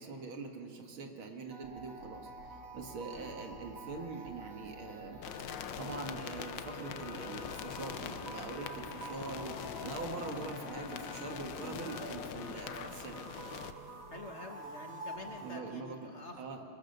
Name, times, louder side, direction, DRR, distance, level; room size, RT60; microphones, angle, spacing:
voice 1, 0.0-5.2 5.5-13.3 15.4-16.0 16.4-16.6, right 4 dB, 85° right, 3 dB, 2.6 m, -43 dB
sound 1, 1.5-15.6, right 2 dB, 45° right, 1.8 m, -48 dB
sound 2, 5.2-13.7, left 9 dB, 70° left, 1.4 m, -43 dB
voice 2, 14.1-16.4, left 2 dB, 40° left, 3 dB, 1.3 m, -48 dB
22.0 x 21.0 x 6.7 m, 2.7 s
omnidirectional pair, 2.2 m